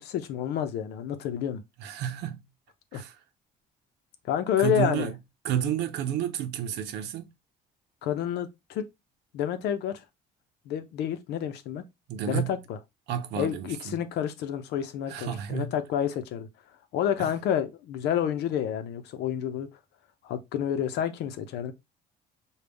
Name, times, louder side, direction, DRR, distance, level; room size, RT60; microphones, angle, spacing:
voice 1, 0.0-1.6 2.9-3.0 4.2-5.1 8.0-8.9 9.3-10.0 10.7-11.8 12.3-12.8 13.3-16.5 16.9-19.7 20.2-21.7, left 9 dB, 80° left, 0.7 m, -29 dB
voice 2, 1.8-2.4 2.9-3.1 4.6-5.1 5.4-7.2 12.1-12.6 13.1-14.0 15.1-15.8, right 9 dB, 85° right, 0.7 m, -31 dB
5.2 x 2.4 x 3.4 m
cardioid pair, 110°, 17 cm